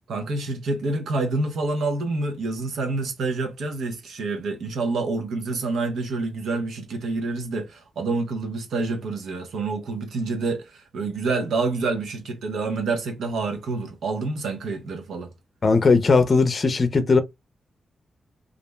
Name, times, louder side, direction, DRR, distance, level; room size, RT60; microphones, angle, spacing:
voice 1, 0.1-15.3, right 3 dB, 85° right, 0.6 m, -27 dB
voice 2, 15.6-17.2, left 4 dB, 45° left, 0.5 m, -18 dB
2.4 x 2.1 x 3.2 m
cardioid pair, 80°, 0 cm